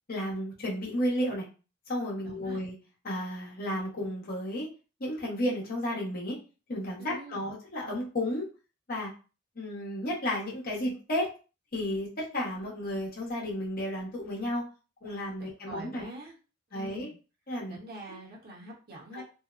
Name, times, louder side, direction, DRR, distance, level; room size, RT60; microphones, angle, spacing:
voice 1, 0.1-1.4 1.9-2.8 3.0-4.7 5.0-6.4 6.7-8.5 8.9-9.1 9.6-11.3 11.7-14.6 15.0-16.0 16.7-17.1 17.5-17.8 18.1-18.2 19.1-19.2, left 1 dB, 45° left, -4 dB, 0.9 m, -32 dB
voice 2, 2.2-2.6 7.0-7.4 15.4-16.4 16.7-17.1 17.7-19.2, right 1 dB, 50° right, -4 dB, 1.0 m, -45 dB
2.7 x 2.0 x 2.4 m, 0.34 s
head